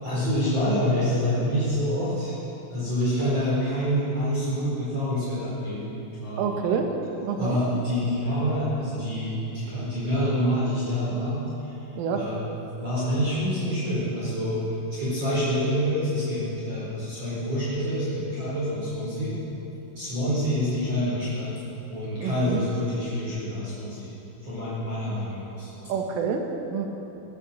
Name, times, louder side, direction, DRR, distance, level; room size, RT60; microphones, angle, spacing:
voice 1, 0.0-2.4 2.7-6.7 7.4-11.4 11.6-11.8 12.2-12.4 12.8-14.6 14.9-19.3 19.9-21.5 21.9-24.1 24.4-25.9, equal, 30° right, -10 dB, 5.0 m, -27 dB
voice 2, 6.4-7.0 7.2-7.6 12.0-12.2 22.2-22.6 25.9-26.9, right 6 dB, 75° right, 3 dB, 3.7 m, -27 dB
17.0 x 11.0 x 7.3 m, 2.9 s
omnidirectional pair, 6.0 m